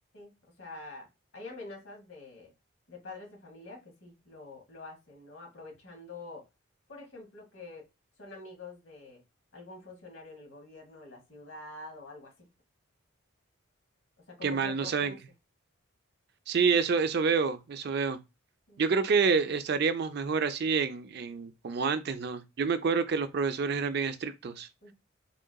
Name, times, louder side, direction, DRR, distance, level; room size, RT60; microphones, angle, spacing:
voice 1, 0.1-1.1 1.3-2.5 2.9-6.5 6.9-7.9 8.2-9.2 9.5-12.5 14.3-15.2 18.7-18.9 24.8-24.9, left 2 dB, 65° left, 2.0 m, -46 dB
voice 2, 14.4-15.1 16.5-18.2 18.8-24.7, right 5 dB, 50° right, 0.4 m, -28 dB
3.7 x 3.7 x 2.2 m
head